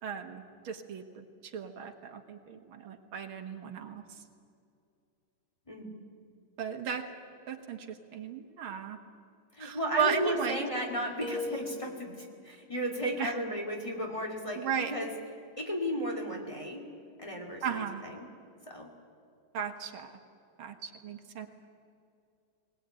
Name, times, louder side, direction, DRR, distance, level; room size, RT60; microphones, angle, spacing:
voice 1, 0.0-4.0 6.6-7.1 7.5-9.0 9.6-10.7 13.2-13.3 14.6-14.9 17.6-18.0 19.5-20.2 20.6-21.5, right 7 dB, 85° right, 6 dB, 2.3 m, -35 dB
voice 2, 9.5-15.1 15.6-16.8 17.2-18.3 18.7-18.9, equal, 15° left, 0 dB, 2.6 m, -34 dB
sound 1, 11.2-12.3, left 2 dB, 50° left, 6.8 m, -38 dB
21.0 x 19.5 x 9.1 m, 2.4 s
omnidirectional pair, 2.2 m